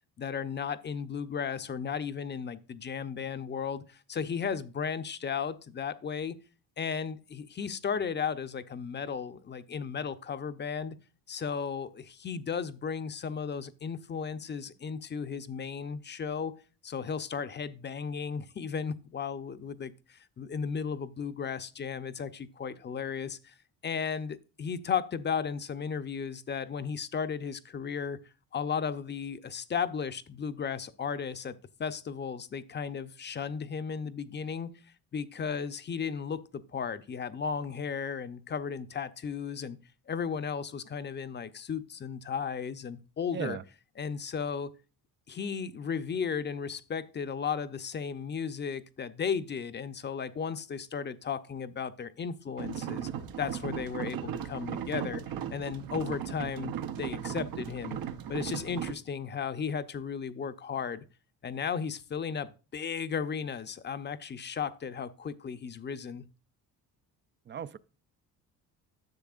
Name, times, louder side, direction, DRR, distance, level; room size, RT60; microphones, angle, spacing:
voice 1, 0.2-6.4 6.8-11.0 11.3-16.5 16.8-23.5 23.8-28.2 28.5-31.5 31.8-34.7 35.1-39.8 40.1-43.6 44.0-44.7 45.3-53.1 53.4-55.2 55.5-58.0 58.3-61.0 61.4-66.2, left 6 dB, 30° left, 0.6 m, -35 dB
sound 1, 52.6-58.9, right 9 dB, 70° right, 0.8 m, -37 dB
voice 2, 67.5-67.8, right 8 dB, 30° right, 0.4 m, -36 dB
10.5 x 6.9 x 2.4 m
cardioid pair, 110°, 37 cm